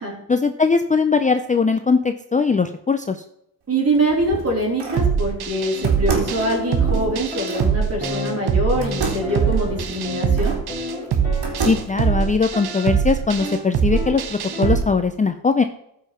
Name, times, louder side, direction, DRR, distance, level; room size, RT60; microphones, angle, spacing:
voice 1, 0.3-3.2 11.7-15.6, left 4 dB, 20° left, 8 dB, 0.5 m, -20 dB
voice 2, 3.7-10.6, right 1 dB, 35° right, -1 dB, 4.0 m, -23 dB
sound 1, 3.8-5.1 5.8-7.7 8.8-10.6 11.1-12.0, right 4 dB, 90° right, 3.1 m, -29 dB
sound 2, 5.0-14.8, right 7 dB, 70° right, 1.1 m, -23 dB
sound 3, 5.5-14.8, left 2 dB, 20° right, 4.1 m, -33 dB
14.0 x 5.8 x 5.7 m, 0.77 s
wide cardioid pair, 135°, 40 cm